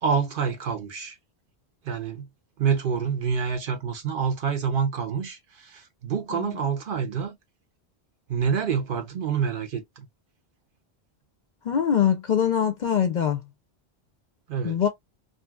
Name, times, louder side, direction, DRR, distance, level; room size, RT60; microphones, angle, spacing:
voice 1, 0.0-1.2 1.8-2.3 2.6-7.4 8.3-10.0 14.5-14.9, right 6 dB, 60° right, 0.7 m, -27 dB
voice 2, 11.6-13.4 14.6-14.9, left 8 dB, 55° left, 0.5 m, -23 dB
2.6 x 2.6 x 2.2 m
omnidirectional pair, 1.1 m